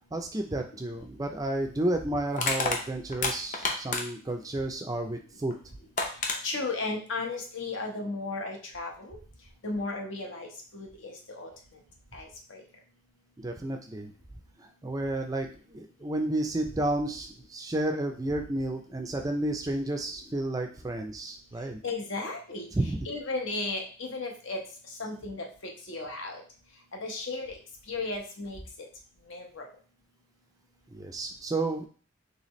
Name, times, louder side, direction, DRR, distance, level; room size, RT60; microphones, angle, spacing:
voice 1, 0.1-5.5 13.4-14.1 14.6-21.8 22.7-23.1 30.9-31.9, right 1 dB, 15° right, 4 dB, 0.3 m, -31 dB
Crushing, 1.0-1.1 2.3-4.3 5.5-5.6 6.0-6.4, left 3 dB, 40° left, 0.6 m, -29 dB
voice 2, 6.4-9.2 9.6-11.5 12.1-12.6 21.8-24.6 25.0-25.5 25.9-26.4 27.0-27.6 27.9-28.6 29.3-29.7, left 3 dB, 70° left, 1 dB, 0.9 m, -35 dB
4.1 x 3.3 x 3.0 m, 0.41 s
head